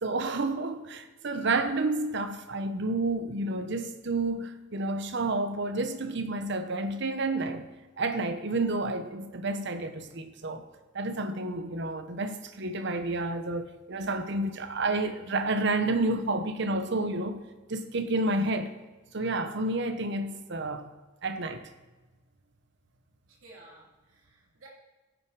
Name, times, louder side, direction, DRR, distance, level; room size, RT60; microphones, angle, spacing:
voice 1, 0.0-7.7 8.0-10.6 10.9-17.4 17.7-18.7 19.1-20.9 21.2-21.6, right 2 dB, 60° right, 0.9 m, -30 dB
voice 2, 23.3-24.7, right 2 dB, 80° right, 2.8 m, -54 dB
15.5 x 6.4 x 4.7 m
head